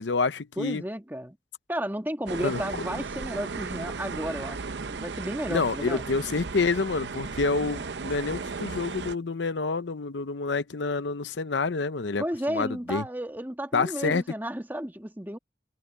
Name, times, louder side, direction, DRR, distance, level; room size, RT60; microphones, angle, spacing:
voice 1, 0.0-0.8 2.4-2.8 5.5-13.1 13.7-14.2, left 4 dB, 75° left, 0.7 m, -28 dB
voice 2, 0.6-1.4 1.7-6.0 12.2-15.4, equal, 10° right, 1.8 m, -33 dB
sound 1, 2.3-9.1, right 4 dB, 70° right, 0.7 m, -35 dB
head